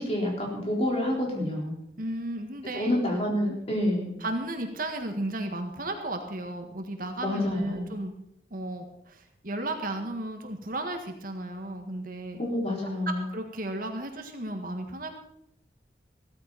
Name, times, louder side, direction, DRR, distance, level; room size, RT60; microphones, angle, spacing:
voice 1, 0.0-1.7 2.7-4.1 7.2-7.9 12.4-13.3, left 1 dB, 35° left, -1 dB, 4.1 m, -28 dB
voice 2, 2.0-2.9 4.2-8.1 8.5-12.4 13.3-15.2, right 1 dB, 55° right, 4 dB, 1.8 m, -34 dB
15.5 x 14.0 x 4.2 m, 0.75 s
head